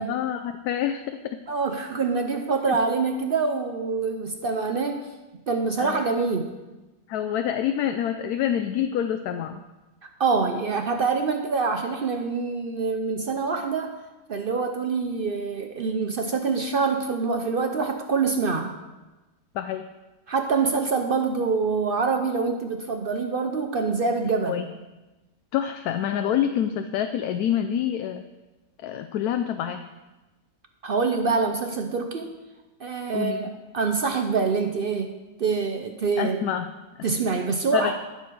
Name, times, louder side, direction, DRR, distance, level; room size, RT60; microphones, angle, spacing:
voice 1, 0.1-1.4 2.7-2.8 5.8-6.0 7.1-9.6 19.5-19.9 24.4-24.7 25.5-28.2 28.8-29.8 33.1-33.4 36.2-36.7 37.7-37.9, left 10 dB, 75° left, 8 dB, 1.0 m, -27 dB
voice 2, 1.5-5.1 5.5-6.5 10.2-14.0 14.3-18.7 20.3-24.6 30.8-32.4 32.8-36.4 37.0-37.9, right 4 dB, 60° right, 5 dB, 0.5 m, -25 dB
13.0 x 6.9 x 4.6 m, 1.1 s
omnidirectional pair, 1.7 m